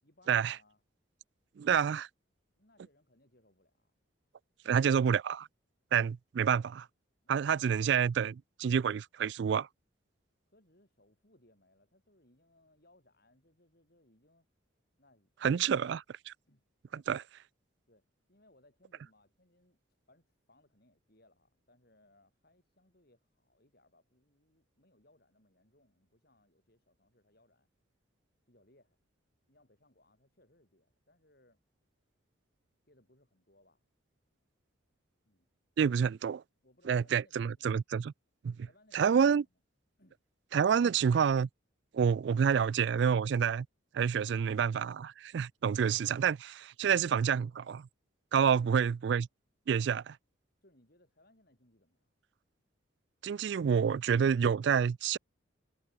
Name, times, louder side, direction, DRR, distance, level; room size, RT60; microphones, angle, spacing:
voice 1, 0.0-0.8 2.6-3.9 7.2-7.6 10.5-14.5 15.0-15.9 16.5-16.6 16.9-17.2 17.9-19.8 20.1-27.7 28.5-29.0 29.5-31.6 32.8-33.9 35.3-35.5 36.6-37.7 38.6-39.5 40.0-40.2 47.6-47.7 48.5-48.7 50.6-52.1, left 1 dB, 50° left, 5.6 m, -67 dB
voice 2, 1.6-2.1 4.7-5.5 5.9-6.9 7.3-9.7 15.4-16.3 17.1-17.2 35.8-36.4 36.9-38.1 38.4-38.6 38.9-39.4 40.5-41.5 41.9-43.7 43.9-47.8 48.3-49.3 49.7-50.2 53.2-55.2, right 7 dB, 60° right, 0.3 m, -28 dB
head